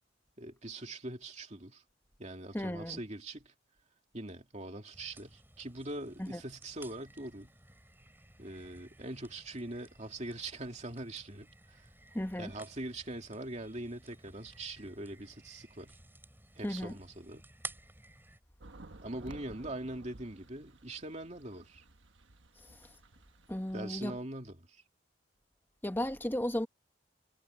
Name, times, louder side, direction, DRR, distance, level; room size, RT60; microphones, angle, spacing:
voice 1, 0.4-1.8 2.2-3.5 4.1-7.5 8.4-11.9 12.4-15.9 16.6-17.4 19.0-21.8 23.7-24.8, right 2 dB, 35° right, 2.6 m, -42 dB
voice 2, 2.5-3.0 6.2-6.4 12.1-12.5 16.6-16.9 22.6-22.9 23.5-24.2 25.8-26.7, left 1 dB, 10° left, 1.4 m, -35 dB
sound 1, 4.9-18.4, right 2 dB, 10° right, 7.4 m, -53 dB
sound 2, 18.6-23.7, right 2 dB, 75° right, 1.3 m, -54 dB
head